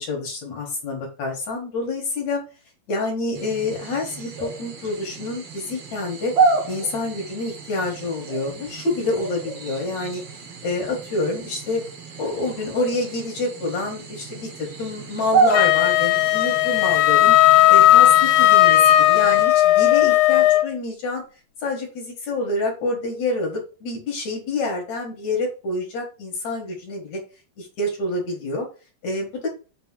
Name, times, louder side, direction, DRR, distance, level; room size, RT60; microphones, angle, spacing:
voice 1, 0.0-2.4 2.9-6.3 6.7-10.2 10.6-11.8 12.2-17.4 17.7-21.2 21.6-27.2 27.6-28.7 29.0-29.5, left 2 dB, 55° left, -1 dB, 2.6 m, -27 dB
sound 1, 3.3-19.4, right 4 dB, 60° right, 1.6 m, -29 dB
Wind instrument woodwind instrument, 15.5-20.7, left 14 dB, 85° left, 2.7 m, -15 dB
6.6 x 3.4 x 6.1 m, 0.34 s
omnidirectional pair, 4.5 m